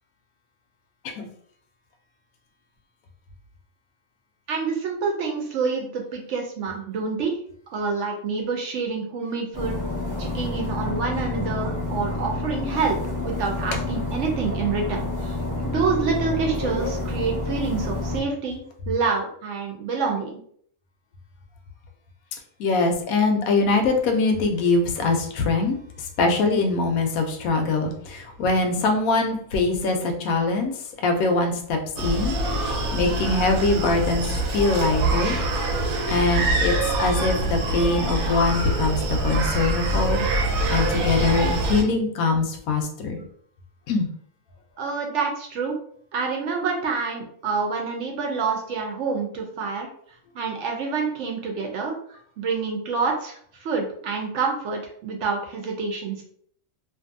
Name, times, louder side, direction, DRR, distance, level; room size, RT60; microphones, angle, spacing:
voice 1, 4.5-7.4 7.7-9.8 10.2-15.3 15.6-20.4 44.8-45.8 46.1-49.9 50.3-51.9 52.4-56.2, right 5 dB, 65° right, 1 dB, 0.8 m, -27 dB
sound 1, 9.5-18.2, left 2 dB, 15° left, 0.8 m, -29 dB
voice 2, 22.6-25.8 26.2-30.7 31.0-35.4 36.1-40.2 40.7-43.2 43.9-44.1, left 3 dB, 85° left, 4 dB, 1.0 m, -23 dB
Screaming, 32.0-41.8, right 2 dB, 90° right, 1.1 m, -24 dB
2.6 x 2.5 x 2.5 m, 0.62 s
omnidirectional pair, 1.5 m